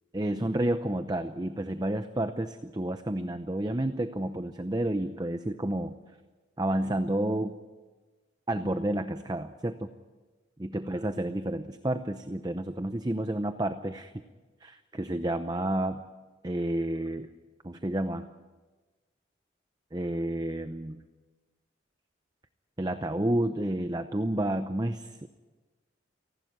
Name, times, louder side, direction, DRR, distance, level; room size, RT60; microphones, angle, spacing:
voice 1, 0.1-6.0 6.6-7.6 8.5-9.9 10.6-14.2 14.6-16.0 16.4-17.3 17.6-18.3 19.9-21.0 22.8-25.3, right 1 dB, 20° right, 9 dB, 0.7 m, -30 dB
29.5 x 12.0 x 9.6 m, 1.3 s
head